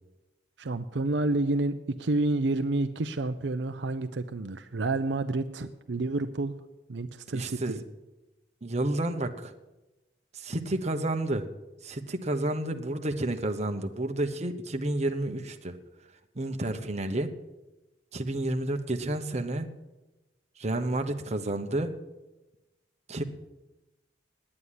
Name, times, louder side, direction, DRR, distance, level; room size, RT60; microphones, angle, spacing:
voice 1, 0.6-6.5 6.9-7.8, right 2 dB, 75° right, 8 dB, 0.6 m, -29 dB
voice 2, 7.3-7.8 8.6-9.5 10.3-11.5 11.8-15.8 16.3-17.3 18.1-19.7 20.6-21.9 23.1-23.2, right 1 dB, 40° right, 6 dB, 1.0 m, -30 dB
9.9 x 9.3 x 9.9 m, 1.0 s
head